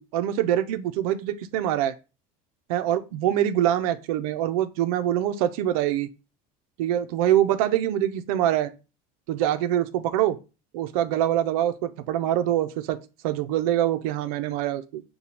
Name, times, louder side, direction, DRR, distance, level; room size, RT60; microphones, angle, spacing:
voice 1, 0.0-1.9 2.7-6.1 6.8-8.7 9.3-10.4 10.7-13.0 13.2-15.0, right 11 dB, 80° right, 0.6 m, -24 dB
6.6 x 2.3 x 2.9 m
supercardioid pair, 135°, 18 cm